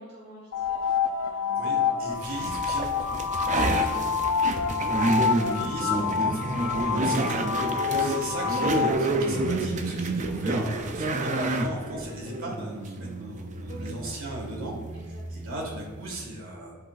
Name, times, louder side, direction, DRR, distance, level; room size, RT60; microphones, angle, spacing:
voice 1, 0.0-2.4 3.3-3.9 4.6-4.8 7.6-8.1 13.7-13.9 14.9-15.2, equal, 55° right, -7 dB, 1.2 m, -46 dB
sound 1, 0.5-8.9, left 6 dB, 75° left, 0.4 m, -27 dB
voice 2, 1.6-4.3 4.9-7.4 7.9-14.8 15.1-16.7, right 1 dB, 70° right, -1 dB, 1.8 m, -37 dB
sound 2, 2.2-16.2, right 2 dB, 35° right, 0.5 m, -29 dB
10.5 x 3.9 x 2.5 m, 1.4 s
head